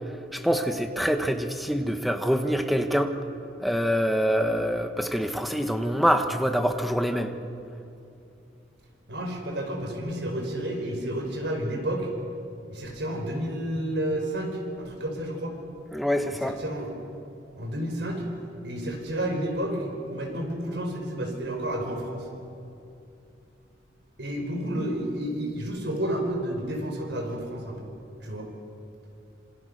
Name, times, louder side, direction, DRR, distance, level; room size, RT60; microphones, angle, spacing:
voice 1, 0.3-3.1 3.6-7.3 15.9-16.6, equal, ahead, 6 dB, 1.4 m, -25 dB
voice 2, 9.1-12.1 12.7-15.6 16.3-16.9 17.6-18.2 18.6-22.3 24.2-27.9 28.2-28.5, right 1 dB, 65° right, 2 dB, 5.0 m, -31 dB
27.0 x 27.0 x 6.7 m, 2.7 s
head